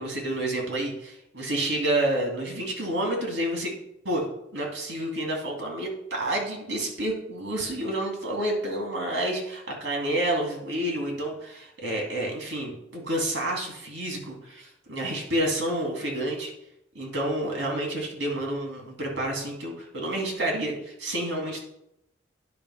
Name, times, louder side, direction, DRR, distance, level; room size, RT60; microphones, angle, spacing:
voice 1, 0.0-3.7 4.0-4.2 4.5-16.5 16.9-21.6, right 1 dB, 85° right, 0 dB, 2.3 m, -29 dB
10.0 x 3.5 x 5.6 m, 0.79 s
head